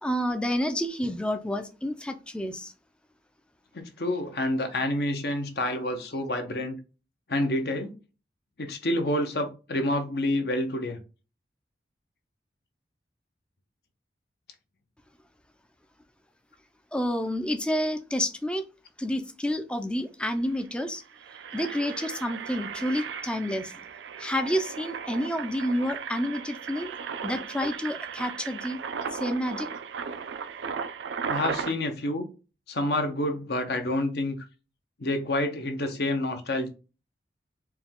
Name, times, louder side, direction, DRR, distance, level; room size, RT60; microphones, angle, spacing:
voice 1, 0.0-2.7 16.9-18.7 19.0-21.0 21.5-23.8 24.2-26.9 27.2-28.8 29.1-29.7, equal, 5° left, 0.4 m, -29 dB
voice 2, 3.7-6.8 7.3-7.9 8.6-11.0 31.2-32.3 32.7-34.4 35.0-36.7, left 1 dB, 60° left, 0.8 m, -28 dB
Engine, 20.0-20.1 20.3-20.6 21.0-31.7, right 6 dB, 85° right, 0.4 m, -36 dB
4.5 x 2.3 x 3.6 m
head